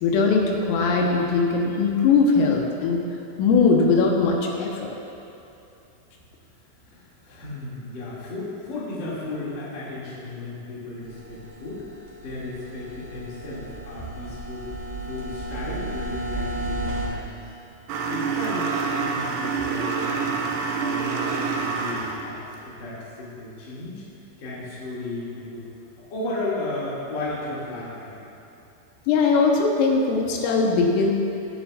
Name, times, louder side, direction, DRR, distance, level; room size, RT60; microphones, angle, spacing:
voice 1, 0.0-3.0 3.4-5.0 29.1-31.1, left 4 dB, 90° left, 0 dB, 3.6 m, -20 dB
voice 2, 6.8-14.7 15.0-17.4 18.1-24.0 24.4-25.6 26.1-28.1, left 2 dB, 35° left, -9 dB, 1.8 m, -34 dB
sound 1, 11.0-17.1, right 1 dB, 45° right, 2.6 m, -33 dB
sound 2, 17.9-22.3, right 5 dB, 85° right, 2.6 m, -27 dB
19.5 x 7.0 x 2.5 m, 2.8 s
omnidirectional pair, 5.8 m